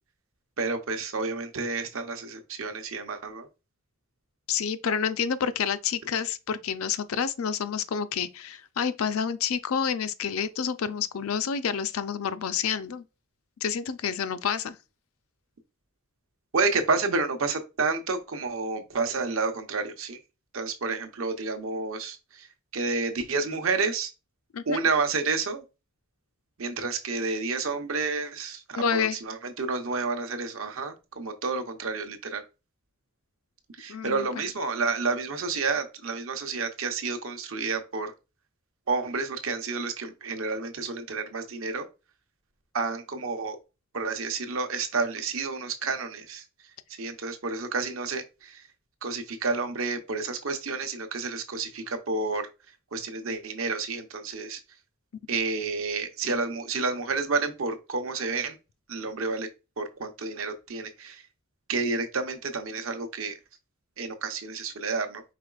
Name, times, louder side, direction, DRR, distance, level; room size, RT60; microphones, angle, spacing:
voice 1, 0.6-3.5 16.5-20.2 20.5-22.5 22.7-24.1 24.7-25.6 26.6-32.4 33.8-38.1 38.9-41.8 42.7-43.6 43.9-46.4 47.0-48.6 49.0-52.5 52.9-54.6 55.3-58.6 58.9-59.5 59.8-61.2 61.7-63.3 64.0-65.2, right 4 dB, 70° right, 0.8 m, -30 dB
voice 2, 4.5-13.0 13.6-14.7 24.5-24.8 28.7-29.2 33.9-34.4, left 7 dB, 75° left, 0.4 m, -29 dB
4.9 x 3.8 x 2.4 m
head